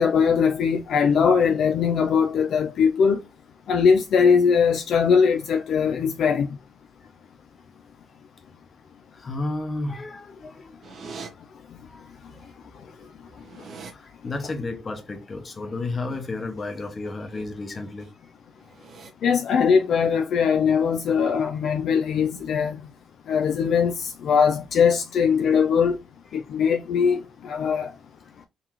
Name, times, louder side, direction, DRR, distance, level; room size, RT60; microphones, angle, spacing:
voice 1, 0.0-3.2 3.7-6.5 19.2-22.8 23.3-26.0 26.3-27.9, left 6 dB, 70° left, 0.3 m, -21 dB
voice 2, 9.1-11.3 11.8-12.6 12.8-12.9 13.8-18.1, left 2 dB, 35° left, 0.9 m, -33 dB
sound 1, 10.8-11.3 12.5-12.6 12.9-13.9 17.1-17.4 17.8-18.1 18.6-19.1, right 5 dB, 55° right, 0.8 m, -43 dB
3.9 x 2.8 x 3.0 m
cardioid pair, 90°, 0 cm